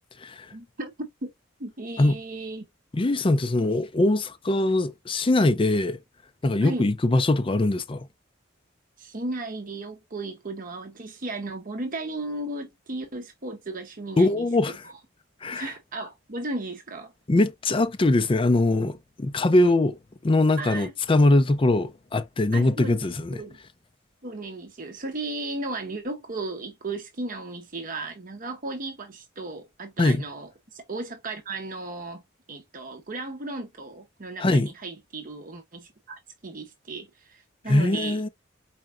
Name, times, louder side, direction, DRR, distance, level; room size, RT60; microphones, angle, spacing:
voice 1, 0.5-1.3 1.6-2.7 6.6-6.9 9.0-14.5 15.5-17.1 20.6-20.9 22.5-23.6 24.2-32.2 32.5-38.2, right 2 dB, 45° right, 0.8 m, -35 dB
voice 2, 2.9-6.0 6.4-8.1 14.2-14.9 15.4-15.7 17.3-20.0 20.2-23.4 30.0-30.2 34.4-34.7 37.7-38.3, left 2 dB, 25° left, 0.5 m, -22 dB
4.7 x 4.3 x 2.4 m
head